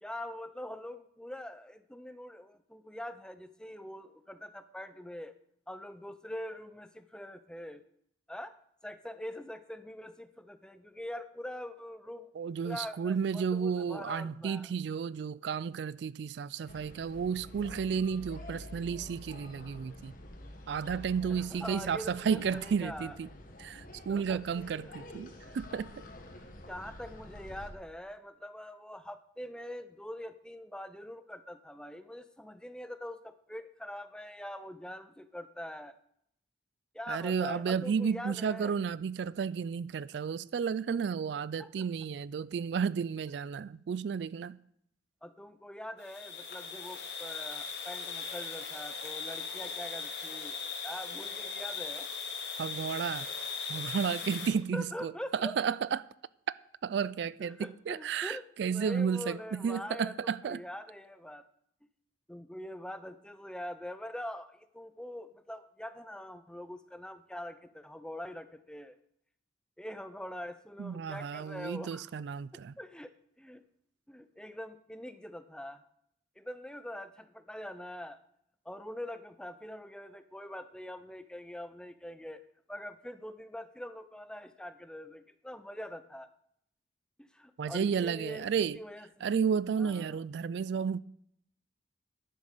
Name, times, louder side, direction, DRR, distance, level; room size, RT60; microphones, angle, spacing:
voice 1, 0.0-5.3 5.7-7.8 8.3-8.5 8.8-12.3 12.6-14.7 21.3-23.2 24.0-24.4 24.8-24.9 26.7-36.0 36.9-38.8 41.6-41.9 45.2-50.6 50.8-52.1 54.7-55.6 57.4-58.4 58.7-61.4 62.3-69.0 69.8-72.1 72.8-73.6 74.1-75.8 76.4-78.2 78.6-82.4 82.7-86.3 87.2-89.3 89.8-90.2, left 1 dB, 5° left, 0.6 m, -43 dB
voice 2, 12.4-20.1 20.7-23.3 23.6-25.3 25.5-25.9 37.1-44.6 52.6-53.3 53.7-55.1 55.4-56.0 56.8-60.6 70.8-72.7 87.6-88.8 89.2-91.0, right 6 dB, 65° right, 0.3 m, -32 dB
sound 1, 16.7-27.7, left 1 dB, 50° left, 1.6 m, -48 dB
sound 2, 46.0-54.5, left 5 dB, 65° left, 2.4 m, -39 dB
10.5 x 7.9 x 6.6 m
head